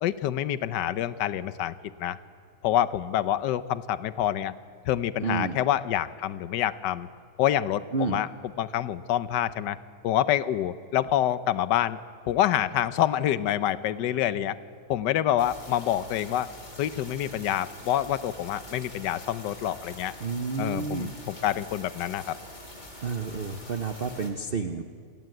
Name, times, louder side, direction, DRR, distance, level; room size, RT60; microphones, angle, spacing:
voice 1, 0.0-2.2 2.6-4.5 4.8-7.1 7.4-8.3 8.6-9.8 10.0-12.0 12.3-14.6 14.9-16.5 16.8-20.1 20.6-22.4, left 11 dB, 65° left, 14 dB, 1.2 m, -27 dB
voice 2, 5.2-5.6 7.9-8.2 20.2-21.1 23.0-24.8, right 4 dB, 90° right, 6 dB, 0.5 m, -30 dB
sound 1, 15.4-24.3, left 1 dB, 20° left, 2.6 m, -45 dB
28.0 x 19.0 x 7.9 m, 2.1 s
omnidirectional pair, 2.3 m